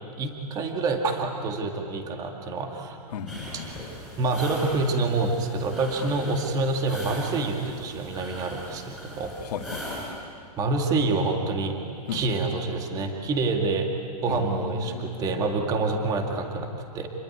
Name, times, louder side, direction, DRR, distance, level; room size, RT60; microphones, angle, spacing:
voice 1, 0.2-3.0 4.2-9.3 10.6-11.8 12.1-13.9 14.2-17.1, right 3 dB, 20° right, 3 dB, 2.1 m, -27 dB
voice 2, 3.1-3.8 9.2-10.1 12.1-12.2 14.3-15.4, left 6 dB, 80° left, 5 dB, 2.4 m, -35 dB
sound 1, 3.3-10.1, equal, ahead, 7.7 m, -39 dB
27.5 x 21.5 x 9.9 m, 2.3 s
supercardioid pair, 170°, 20 cm